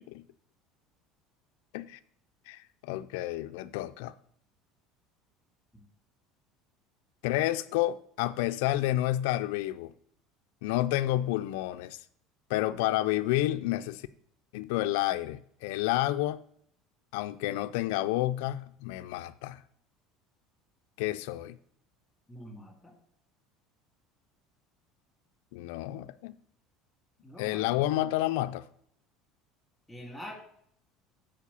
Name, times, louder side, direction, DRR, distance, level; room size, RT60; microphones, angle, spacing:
voice 1, 2.5-4.1 7.2-9.9 10.6-12.0 12.5-14.0 14.5-16.4 17.1-19.6 21.0-21.6 25.5-26.4 27.4-28.6, left 15 dB, 85° left, 0.4 m, -30 dB
voice 2, 22.3-22.9 27.2-27.8 29.9-30.4, left 1 dB, 5° left, 2.1 m, -45 dB
7.3 x 4.5 x 6.9 m
cardioid pair, 130°, 0 cm